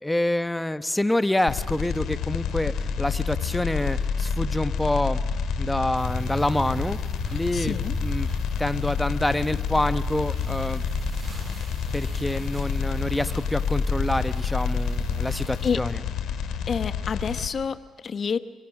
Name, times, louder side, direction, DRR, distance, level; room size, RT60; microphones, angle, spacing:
voice 1, 0.0-5.2 5.6-7.0 7.3-8.3 8.6-10.9 11.9-16.0, left 1 dB, 10° left, 11 dB, 1.1 m, -27 dB
sound 1, 1.5-17.5, left 6 dB, 80° left, 2.1 m, -28 dB
sound 2, 6.0-15.7, right 4 dB, 35° right, 2.8 m, -38 dB
voice 2, 7.5-8.0 15.6-15.8 16.7-18.4, left 6 dB, 50° left, 12 dB, 1.0 m, -28 dB
29.5 x 23.0 x 6.1 m, 1.5 s
cardioid pair, 90°, 0 cm